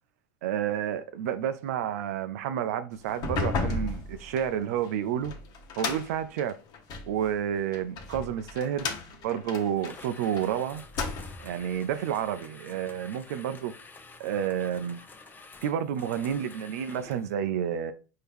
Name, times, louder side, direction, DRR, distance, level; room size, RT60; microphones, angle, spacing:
voice 1, 0.4-5.3 5.8-6.6 7.1-8.9 9.2-10.8 11.4-13.7 14.2-15.0 15.6-17.9, right 9 dB, 80° right, 0.4 m, -30 dB
sound 1, 3.1-7.1 7.7-10.4 10.8-11.6, left 3 dB, 55° left, 1.1 m, -34 dB
sound 2, 9.8-17.3, left 3 dB, 25° left, 0.7 m, -49 dB
4.5 x 2.8 x 3.4 m
hypercardioid pair, 90°, 8 cm